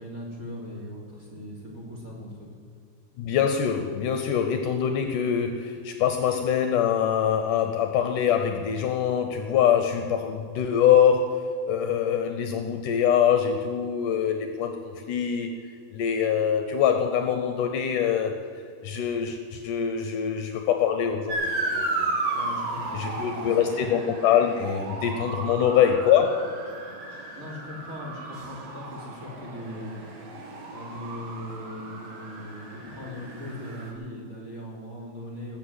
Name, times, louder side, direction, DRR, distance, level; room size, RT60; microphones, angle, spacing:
voice 1, 0.0-2.5 22.3-23.9 27.3-30.4 30.7-35.6, left 1 dB, 25° right, -1 dB, 3.7 m, -39 dB
voice 2, 3.2-15.5 15.9-18.4 18.8-22.2 22.9-26.5, left 8 dB, 75° left, 7 dB, 2.2 m, -24 dB
Motor vehicle (road) / Siren, 21.3-33.9, right 2 dB, 80° right, 4.3 m, -34 dB
20.0 x 7.8 x 8.1 m, 2.3 s
omnidirectional pair, 4.2 m